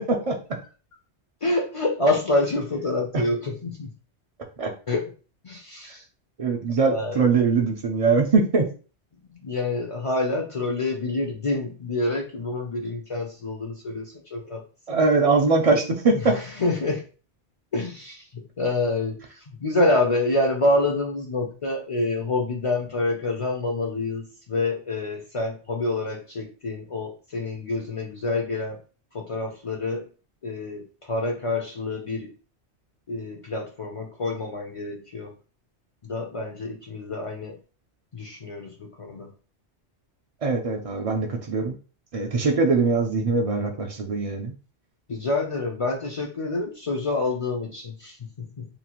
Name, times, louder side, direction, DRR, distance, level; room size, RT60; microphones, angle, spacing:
voice 1, 1.4-3.9 4.9-5.1 5.4-6.0 6.9-7.3 9.4-14.6 14.9-15.0 16.3-17.0 17.7-19.2 19.6-28.8 29.1-30.1 30.4-30.8 31.1-32.3 33.1-35.3 36.0-37.6 38.1-39.3 45.1-48.7, left 2 dB, 45° left, 0 dB, 0.4 m, -27 dB
voice 2, 6.4-8.7 14.9-16.3 40.4-41.7 42.1-44.5, right 4 dB, 55° right, 2 dB, 0.4 m, -22 dB
2.9 x 2.4 x 2.9 m, 0.35 s
omnidirectional pair, 1.2 m